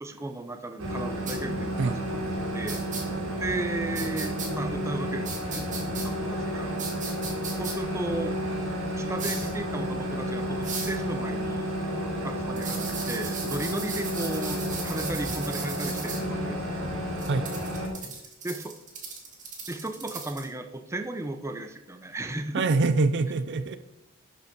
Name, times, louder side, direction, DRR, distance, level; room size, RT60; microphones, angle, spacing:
voice 1, 0.0-2.2 2.5-3.0 3.4-6.7 7.6-8.4 9.0-11.7 12.2-16.8 17.9-18.2 18.4-18.7 19.7-22.7, right 2 dB, 15° right, 7 dB, 0.6 m, -35 dB
sound 1, 0.8-17.9, equal, 90° right, 3.6 m, -31 dB
sound 2, 1.3-1.4 2.7-3.0 3.9-4.5 5.2-6.1 6.8-7.7 9.2-9.5 10.6-11.0 12.6-16.2 17.2-20.5, right 5 dB, 35° right, 2.0 m, -37 dB
voice 2, 22.5-23.8, right 3 dB, 55° right, 11 dB, 0.5 m, -24 dB
11.5 x 5.6 x 5.2 m, 0.93 s
head